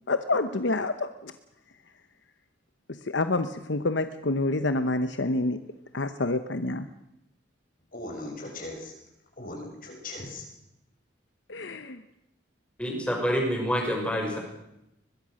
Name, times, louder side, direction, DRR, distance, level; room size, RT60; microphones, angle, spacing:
voice 1, 0.1-1.3 2.9-5.6 5.9-6.9 11.5-12.0, left 2 dB, 70° left, 10 dB, 1.0 m, -28 dB
voice 2, 7.9-9.0 9.4-10.5, left 2 dB, 45° left, 2 dB, 6.7 m, -38 dB
voice 3, 12.8-14.4, equal, 5° left, 0 dB, 6.2 m, -27 dB
22.5 x 21.5 x 6.5 m, 0.83 s
head